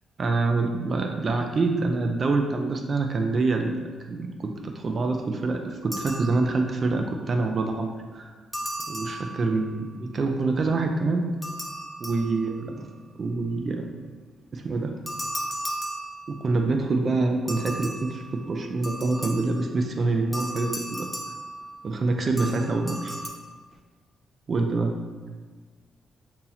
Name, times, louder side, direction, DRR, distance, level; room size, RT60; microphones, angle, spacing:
voice 1, 0.2-3.8 4.1-8.3 8.9-11.3 12.0-13.9 14.5-14.9 16.3-21.1 21.8-23.2 24.5-24.9, right 3 dB, 45° right, 4 dB, 0.3 m, -26 dB
sound 1, 5.9-6.9 8.5-9.8 11.4-12.8 15.1-16.7 17.5-19.7 20.3-22.0 22.4-23.3, right 1 dB, 5° left, 0.5 m, -36 dB
2.8 x 2.7 x 3.9 m, 1.5 s
cardioid pair, 95°, 0 cm